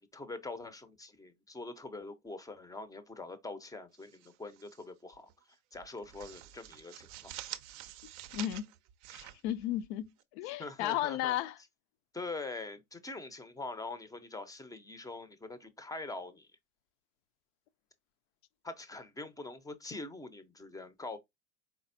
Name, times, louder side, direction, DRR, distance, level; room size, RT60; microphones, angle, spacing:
voice 1, 0.0-5.3 5.7-7.3 10.6-11.4 12.1-16.5 18.6-21.2, left 3 dB, 10° left, 0.7 m, -44 dB
sound 1, 3.9-4.8 5.1-5.3 5.7-10.2, right 13 dB, 40° right, 0.6 m, -48 dB
voice 2, 8.3-8.7 9.1-10.0 10.3-11.6, left 12 dB, 50° left, 0.6 m, -34 dB
4.4 x 4.0 x 2.6 m
hypercardioid pair, 90°, 45 cm